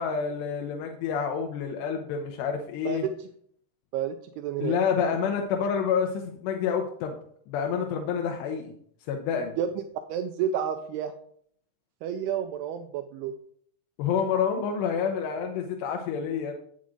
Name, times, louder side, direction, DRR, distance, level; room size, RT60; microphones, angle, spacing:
voice 1, 0.0-3.0 4.6-7.2 7.5-8.7 9.1-9.6 14.0-16.5, left 7 dB, 85° left, 3 dB, 2.9 m, -28 dB
voice 2, 2.9-3.3 3.9-4.8 9.6-9.7 10.1-11.1 12.0-13.3, right 9 dB, 80° right, 6 dB, 2.5 m, -30 dB
8.8 x 7.4 x 3.7 m, 0.63 s
omnidirectional pair, 4.8 m